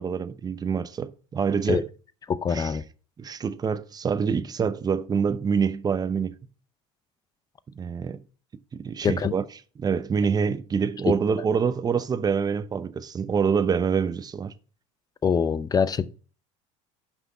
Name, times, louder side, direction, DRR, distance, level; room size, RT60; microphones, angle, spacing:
voice 1, 0.0-1.9 2.5-2.7 3.2-6.4 7.8-8.2 8.7-9.4 9.8-14.5, right 6 dB, 25° right, 0.6 m, -26 dB
voice 2, 2.3-2.8 9.0-9.3 11.1-11.2 15.2-16.1, left 6 dB, 25° left, 0.6 m, -24 dB
6.0 x 5.7 x 7.1 m
supercardioid pair, 105°, 16 cm